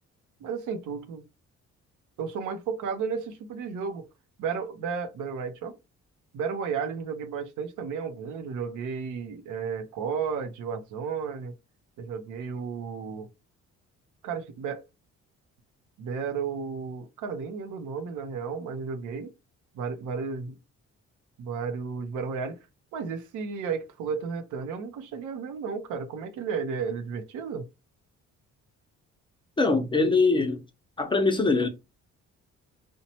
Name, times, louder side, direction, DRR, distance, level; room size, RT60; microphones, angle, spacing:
voice 1, 0.4-1.2 2.2-4.1 4.4-5.8 6.3-11.5 12.0-13.3 14.2-14.8 16.0-19.3 19.7-20.6 21.4-22.6 22.9-27.7, right 6 dB, 80° right, 0.6 m, -33 dB
voice 2, 29.6-30.6 31.0-31.7, left 3 dB, 15° left, 0.6 m, -22 dB
2.9 x 2.1 x 2.8 m
cardioid pair, 90°, 30 cm